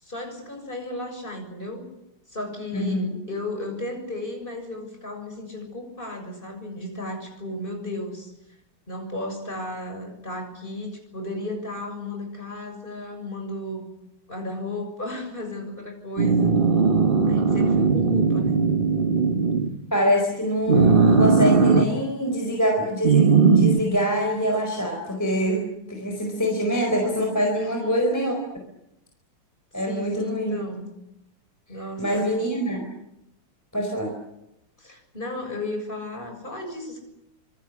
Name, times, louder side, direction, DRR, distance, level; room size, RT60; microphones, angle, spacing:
voice 1, 0.0-1.9 2.3-8.3 8.9-13.8 14.3-16.5 17.3-18.6 27.5-28.1 29.8-30.9 31.7-32.3 34.8-37.0, left 1 dB, 25° left, 3 dB, 7.2 m, -34 dB
voice 2, 2.7-3.2 19.9-28.4 29.7-30.6 32.0-32.8 33.7-34.1, equal, 10° left, 1 dB, 4.6 m, -24 dB
sound 1, 16.2-19.8 20.7-21.9 23.0-23.8, right 5 dB, 30° right, 1.4 m, -18 dB
26.0 x 23.5 x 8.5 m, 0.87 s
omnidirectional pair, 2.3 m